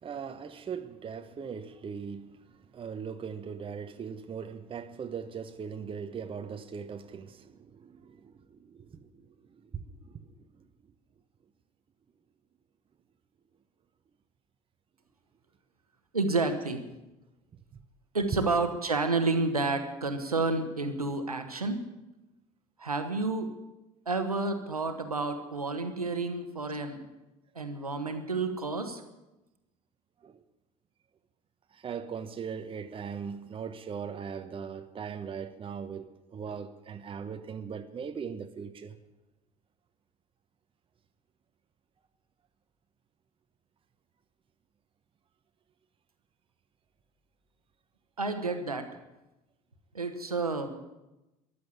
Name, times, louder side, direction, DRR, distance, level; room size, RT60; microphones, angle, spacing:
voice 1, 0.0-10.4 30.2-30.4 31.7-39.0, right 6 dB, 30° right, 1.1 m, -40 dB
voice 2, 16.1-16.8 18.1-21.8 22.8-23.5 24.0-27.1 27.5-29.0 48.2-48.9 49.9-50.8, right 3 dB, 90° right, 1.4 m, -30 dB
14.0 x 11.5 x 8.7 m
figure-of-eight pair, 65°, 18 cm